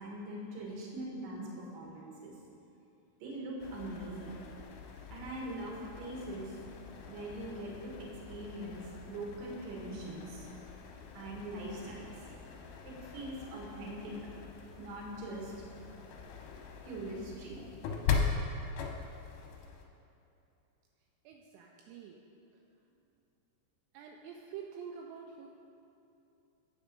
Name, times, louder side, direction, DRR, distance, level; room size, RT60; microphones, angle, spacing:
voice 1, 0.0-2.3 3.2-4.4 5.1-6.6 7.0-10.8 11.1-12.4 12.9-14.2 14.8-15.7 16.9-17.6, right 1 dB, 65° right, -3 dB, 2.7 m, -42 dB
sound 1, 3.6-19.8, left 5 dB, 75° left, 2.3 m, -41 dB
voice 2, 21.2-22.2 23.9-25.5, right 7 dB, 85° right, 0 dB, 2.7 m, -47 dB
8.6 x 5.9 x 5.2 m, 2.8 s
omnidirectional pair, 5.1 m